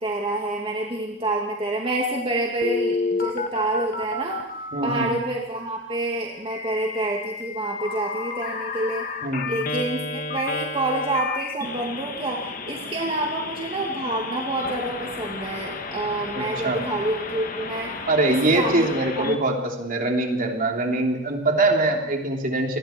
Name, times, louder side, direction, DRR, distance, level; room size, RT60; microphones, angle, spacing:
voice 1, 0.0-4.4 4.8-9.1 9.4-12.4 12.7-18.0 18.3-18.9 19.2-19.3, right 2 dB, 30° right, -1 dB, 2.4 m, -27 dB
Telephone, 2.6-5.1 6.5-19.3, left 3 dB, 45° left, 1.8 m, -32 dB
voice 2, 4.7-5.1 9.2-9.5 16.3-16.8 18.1-22.8, right 2 dB, 45° right, 2 dB, 3.3 m, -23 dB
28.5 x 21.0 x 4.6 m, 0.85 s
head